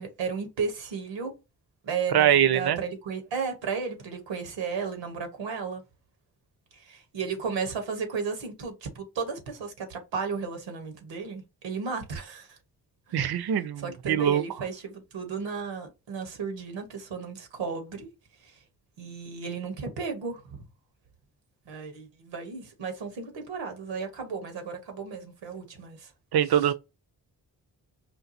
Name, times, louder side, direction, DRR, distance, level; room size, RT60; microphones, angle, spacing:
voice 1, 0.0-1.3 1.8-5.8 6.7-12.6 13.1-13.3 13.8-18.1 18.4-18.6 19.0-20.6 21.7-26.1, right 5 dB, 85° right, 1.0 m, -34 dB
voice 2, 2.1-2.8 13.1-14.4 26.3-26.7, right 10 dB, 60° right, 0.6 m, -23 dB
4.5 x 2.3 x 2.5 m
supercardioid pair, 40°, 43 cm